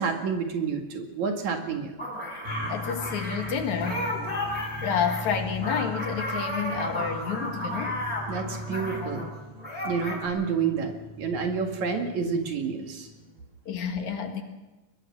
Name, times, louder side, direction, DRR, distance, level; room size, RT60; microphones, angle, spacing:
voice 1, 0.0-2.0 8.3-9.3 9.8-13.1, right 5 dB, 70° right, 4 dB, 3.5 m, -29 dB
sound 1, 2.0-9.3 9.6-10.3, left 1 dB, 25° left, 6.9 m, -33 dB
sound 2, 2.4-13.4, left 1 dB, 10° right, 7.4 m, -40 dB
voice 2, 2.7-4.1 4.8-8.0 13.7-14.4, left 7 dB, 70° left, 5 dB, 3.2 m, -29 dB
23.5 x 20.5 x 6.1 m, 1.1 s
omnidirectional pair, 3.5 m